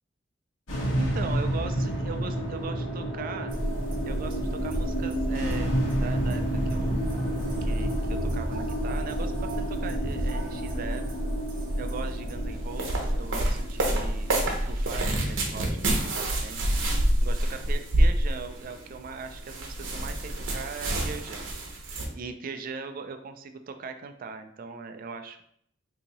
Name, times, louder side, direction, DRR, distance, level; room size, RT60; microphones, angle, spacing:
sound 1, 0.7-17.1, right 1 dB, 85° left, 1.1 m, -31 dB
voice 1, 1.0-3.6 4.1-5.7 6.0-7.0 7.6-11.1 11.8-16.7 17.2-21.5 22.1-25.4, right 5 dB, 45° right, 8 dB, 0.4 m, -39 dB
sound 2, 3.5-22.1, right 1 dB, 80° right, 0.7 m, -29 dB
2.8 x 2.8 x 3.9 m, 0.68 s
head